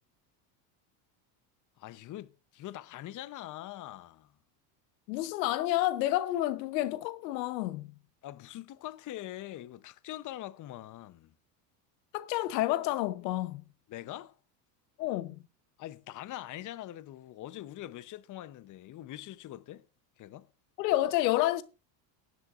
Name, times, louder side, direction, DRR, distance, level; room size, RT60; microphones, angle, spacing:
voice 1, 1.8-4.3 8.2-11.3 13.9-14.4 15.8-19.9 20.2-20.5, left 14 dB, 40° left, 0.8 m, -43 dB
voice 2, 5.1-7.9 12.1-13.6 15.0-15.4 20.8-21.6, left 15 dB, 90° left, 1.0 m, -29 dB
17.5 x 11.0 x 2.5 m
supercardioid pair, 110°, 48 cm